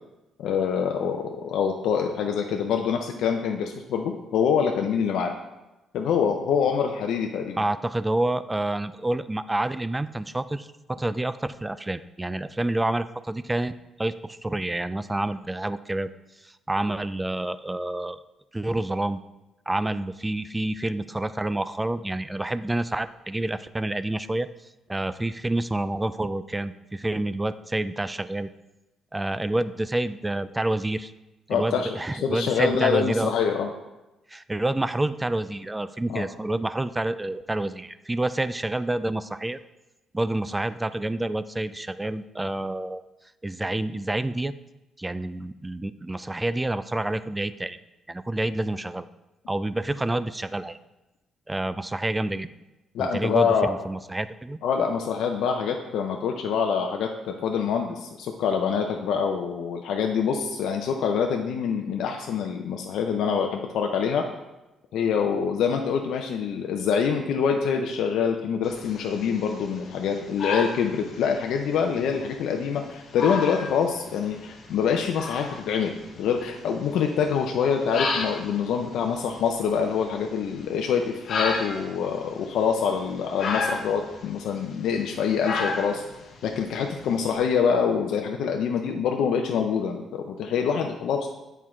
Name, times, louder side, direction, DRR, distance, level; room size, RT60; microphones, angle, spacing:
voice 1, 0.4-5.3 5.9-7.6 31.5-33.7 36.1-36.2 52.9-53.7 54.6-64.2 64.9-86.0 86.4-91.3, left 6 dB, 80° left, 3 dB, 0.5 m, -25 dB
voice 2, 7.6-13.7 14.0-16.1 16.4-18.2 18.5-19.2 19.7-24.5 24.9-28.5 29.1-31.1 31.5-33.3 34.3-39.6 40.1-43.0 43.4-44.5 45.0-47.8 48.1-49.1 49.5-50.8 51.5-52.5 53.0-54.6, right 1 dB, 15° right, 14 dB, 0.3 m, -28 dB
sound 1, 68.6-87.3, left 3 dB, 60° left, 1.0 m, -35 dB
8.1 x 4.5 x 3.7 m, 1.0 s
cardioid pair, 90°, 0 cm